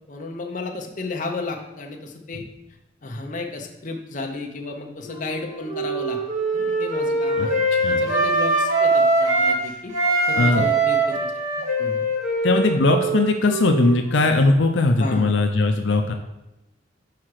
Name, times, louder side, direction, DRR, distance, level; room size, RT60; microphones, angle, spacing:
voice 1, 0.1-2.4 3.0-6.2 6.5-7.6 8.0-9.9 10.3-11.4 11.8-12.1 15.0-15.3, left 3 dB, 45° left, 2 dB, 0.8 m, -33 dB
Wind instrument woodwind instrument, 5.1-9.6 9.9-14.4, right 2 dB, 40° right, 2.2 m, -22 dB
voice 2, 10.3-10.7 12.4-16.1, left 2 dB, 80° left, 4 dB, 0.6 m, -19 dB
5.9 x 4.9 x 4.8 m, 0.98 s
head